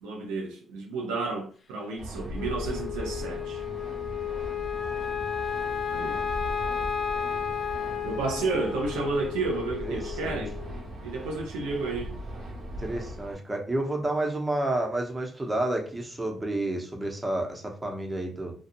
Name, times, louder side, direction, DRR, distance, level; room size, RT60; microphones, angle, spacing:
voice 1, 0.0-3.6 5.9-6.2 8.0-10.6 11.0-12.2, right 3 dB, 85° right, 0.4 m, -31 dB
sound 1, 2.0-13.3, right 1 dB, 70° right, 1.0 m, -39 dB
Wind instrument woodwind instrument, 2.4-10.8, left 8 dB, 55° left, 0.5 m, -33 dB
voice 2, 9.8-10.4 12.8-18.5, right 1 dB, 20° right, 0.8 m, -30 dB
2.7 x 2.3 x 2.6 m
supercardioid pair, 50°, 0 cm